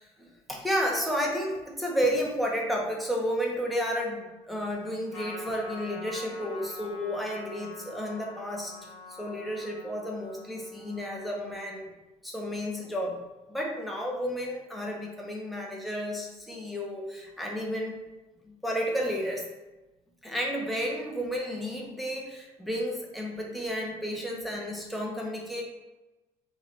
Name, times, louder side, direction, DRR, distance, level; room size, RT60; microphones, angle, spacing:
voice 1, 0.0-8.9 9.2-11.9 12.2-13.2 13.5-18.0 18.4-19.4 20.2-25.6, equal, ahead, -2 dB, 0.6 m, -32 dB
Trumpet, 5.1-11.8, left 3 dB, 25° left, 1.2 m, -45 dB
3.1 x 2.2 x 3.7 m, 1.1 s
cardioid pair, 145°, 12 cm